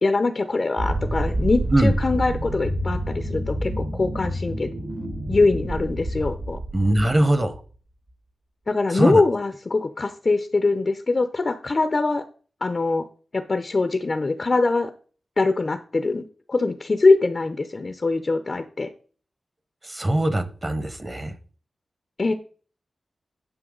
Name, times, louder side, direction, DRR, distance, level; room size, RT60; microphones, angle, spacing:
voice 1, 0.0-4.7 5.3-6.6 8.7-12.2 12.6-13.1 13.3-14.9 15.4-16.2 16.5-18.9 22.2-22.3, left 3 dB, 40° left, 0.6 m, -22 dB
sound 1, 0.8-7.6, right 1 dB, 55° right, 1.9 m, -28 dB
voice 2, 6.7-7.5 8.9-9.2 19.8-21.3, right 1 dB, 25° right, 1.1 m, -21 dB
11.0 x 5.7 x 3.8 m
wide cardioid pair, 105°, 0 cm